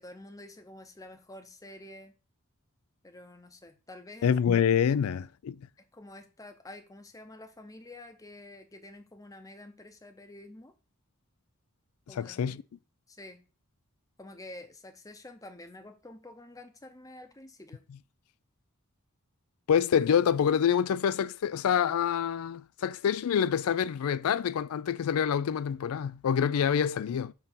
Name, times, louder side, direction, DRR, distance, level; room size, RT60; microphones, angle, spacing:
voice 1, 0.0-2.1 3.0-4.3 4.9-5.0 5.8-10.7 12.1-12.6 13.1-13.4 14.2-17.9, left 1 dB, 15° left, 0.7 m, -48 dB
voice 2, 4.2-5.6 12.1-12.6 19.7-27.3, left 8 dB, 75° left, 0.3 m, -26 dB
7.0 x 2.7 x 5.5 m
head